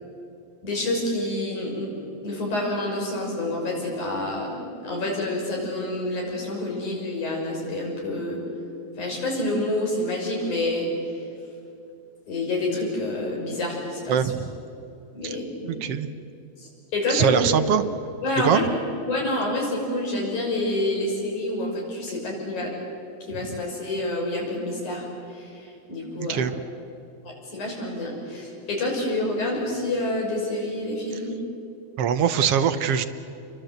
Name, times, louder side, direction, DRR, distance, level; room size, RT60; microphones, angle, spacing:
voice 1, 0.6-1.9 2.2-4.5 4.8-8.4 9.0-10.9 12.3-14.3 15.1-15.8 16.6-17.4 18.2-18.7 19.1-22.7 23.3-26.4 27.2-31.4, left 1 dB, 90° left, -1 dB, 7.7 m, -28 dB
voice 2, 14.1-14.5 15.2-15.4 15.6-16.1 17.1-17.8 18.4-18.6 26.2-26.5 32.0-33.1, right 8 dB, 65° right, 10 dB, 1.7 m, -22 dB
28.5 x 23.5 x 8.0 m, 2.6 s
omnidirectional pair, 3.4 m